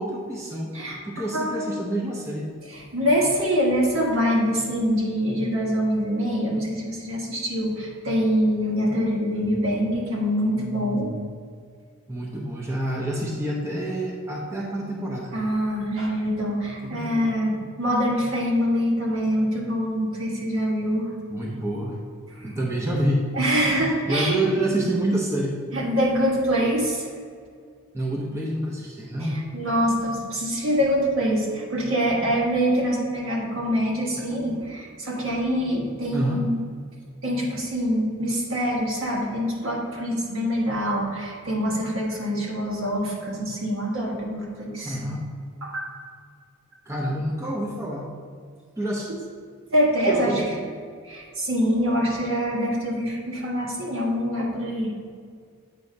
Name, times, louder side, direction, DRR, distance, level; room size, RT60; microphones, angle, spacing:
voice 1, 0.0-0.7 1.0-2.5 12.1-15.3 16.8-17.3 21.3-22.0 22.4-23.3 24.1-25.6 27.9-29.4 34.2-34.3 36.1-36.5 44.8-45.2 46.9-48.1 48.8-49.1 50.1-50.6, right 1 dB, 15° right, -3 dB, 0.7 m, -27 dB
voice 2, 1.3-1.7 2.7-11.1 15.3-21.1 22.3-22.5 23.3-24.4 25.7-27.1 29.5-36.6 37.2-45.0 45.6-45.9 49.1-49.2 49.7-50.4 51.0-54.9, equal, 70° right, -3 dB, 1.5 m, -24 dB
8.1 x 2.8 x 5.2 m, 2.1 s
head